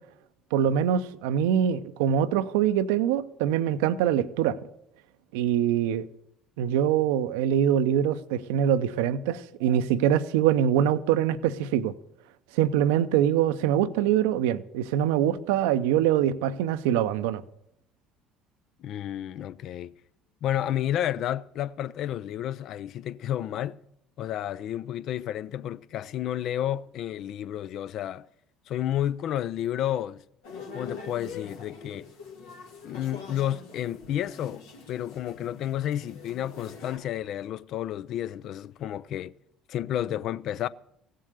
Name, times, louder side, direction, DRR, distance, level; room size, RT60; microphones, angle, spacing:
voice 1, 0.5-4.6 5.3-6.1 6.6-11.9 12.5-17.4, right 10 dB, 75° right, 0.6 m, -24 dB
voice 2, 18.8-19.9 20.4-23.8 24.2-28.3 28.7-30.2 30.7-32.1 32.8-39.3 39.7-40.7, left 11 dB, 55° left, 0.4 m, -31 dB
sound 1, 30.4-37.0, left 5 dB, 80° left, 1.9 m, -44 dB
16.0 x 7.6 x 6.6 m
hypercardioid pair, 60°, 0 cm